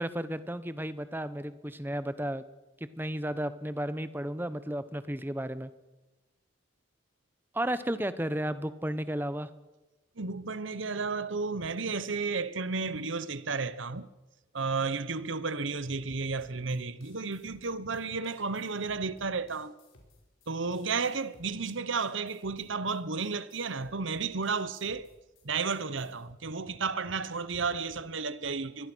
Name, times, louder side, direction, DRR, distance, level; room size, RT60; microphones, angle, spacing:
voice 1, 0.0-2.4 3.0-5.7 7.5-9.5, right 1 dB, 10° right, 0.9 m, -33 dB
voice 2, 10.2-14.1 14.5-19.7 20.5-25.1 25.4-28.9, right 4 dB, 75° right, 1.1 m, -32 dB
sound 1, 16.4-26.3, left 2 dB, 85° left, 5.5 m, -61 dB
24.0 x 21.5 x 6.3 m
head